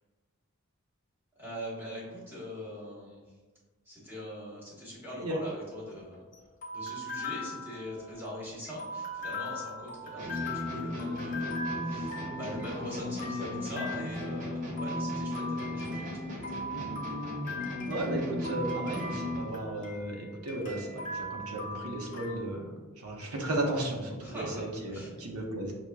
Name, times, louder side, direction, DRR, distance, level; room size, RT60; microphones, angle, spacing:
voice 1, 1.4-3.2 3.8-6.2 6.7-16.6 24.2-25.1, equal, 10° right, -6 dB, 1.1 m, -42 dB
sound 1, 5.6-22.3, left 1 dB, 35° left, 0.6 m, -40 dB
sound 2, 10.2-19.6, left 1 dB, 35° right, 0.6 m, -36 dB
voice 2, 17.9-22.7 23.0-25.7, right 1 dB, 80° right, 0 dB, 0.7 m, -34 dB
6.0 x 2.1 x 2.2 m, 1.3 s
head